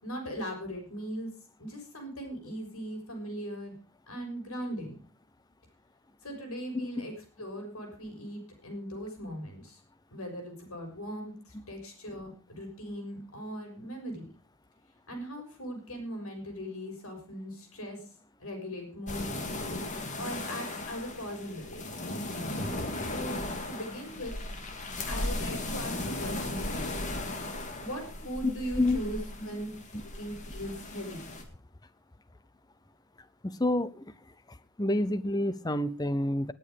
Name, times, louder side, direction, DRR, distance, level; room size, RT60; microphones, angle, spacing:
voice 1, 0.0-1.3 1.6-3.7 4.1-5.0 6.2-7.1 7.4-9.8 10.1-14.3 15.1-18.0 18.4-19.3 20.2-21.8 23.1-23.4 23.7-24.3 25.1-27.0 27.8-29.7 30.0-31.2, equal, 75° left, 3 dB, 6.5 m, -39 dB
voice 2, 6.7-7.1 28.4-29.0 29.9-30.0 33.4-34.0 34.8-36.5, left 1 dB, 15° left, 15 dB, 0.7 m, -28 dB
sound 1, 19.1-31.4, left 1 dB, 35° left, 2.3 m, -36 dB
19.0 x 8.8 x 5.2 m, 0.37 s
head